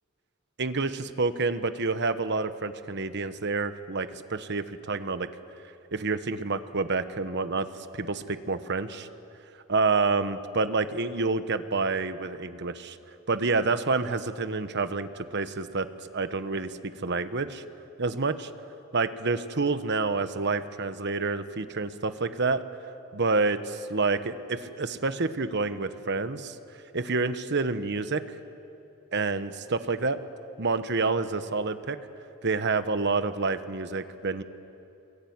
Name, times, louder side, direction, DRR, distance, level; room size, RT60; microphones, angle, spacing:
voice 1, 0.6-5.3 5.9-7.7 7.9-9.1 9.7-13.0 13.3-15.9 16.1-16.7 17.0-17.6 18.0-18.5 18.9-22.6 23.1-26.5 26.9-28.2 29.1-30.2 30.6-32.0 32.4-34.4, right 3 dB, 55° right, 11 dB, 1.2 m, -28 dB
23.5 x 22.0 x 9.6 m, 2.9 s
head